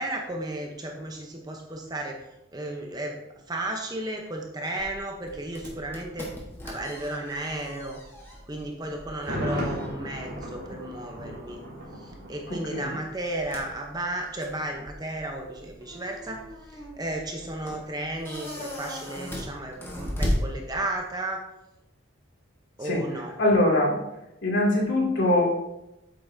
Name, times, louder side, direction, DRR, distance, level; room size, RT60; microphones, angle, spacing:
voice 1, 0.0-2.2 2.5-6.3 6.6-8.0 8.5-11.6 12.0-16.4 16.7-21.4 22.8-23.3, right 1 dB, 20° right, 2 dB, 0.8 m, -34 dB
sound 1, 4.8-21.2, equal, 10° left, 1.3 m, -37 dB
Thunder, 9.1-13.0 13.3-13.4, equal, 55° right, 3.1 m, -35 dB
voice 2, 23.4-24.0 24.4-25.4, left 1 dB, 60° left, -4 dB, 2.6 m, -22 dB
8.5 x 7.7 x 2.7 m, 0.91 s
head